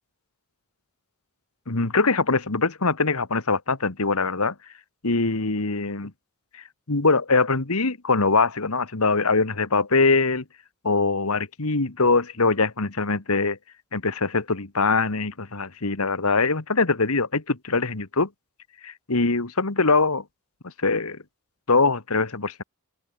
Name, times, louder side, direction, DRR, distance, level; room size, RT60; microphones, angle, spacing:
voice 1, 1.7-4.5 5.0-6.1 6.9-10.4 10.8-13.6 13.9-18.3 18.8-20.2 20.8-21.2 21.7-22.6, left 3 dB, 75° left, 1.8 m, -22 dB
open air
head